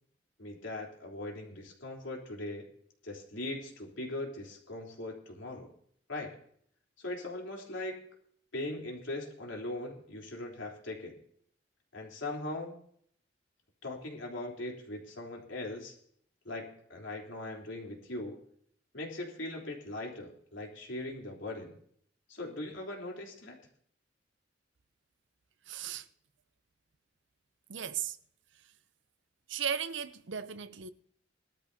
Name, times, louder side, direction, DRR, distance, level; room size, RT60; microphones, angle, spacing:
voice 1, 0.4-2.7 3.0-5.7 6.1-6.4 7.0-8.0 8.5-11.2 11.9-12.8 13.8-16.0 16.5-18.4 18.9-21.8 22.3-23.6, left 2 dB, 80° left, 3.5 m, -40 dB
voice 2, 25.7-26.1 27.7-28.2 29.5-30.9, right 8 dB, 70° right, 0.6 m, -36 dB
20.5 x 13.0 x 2.8 m
head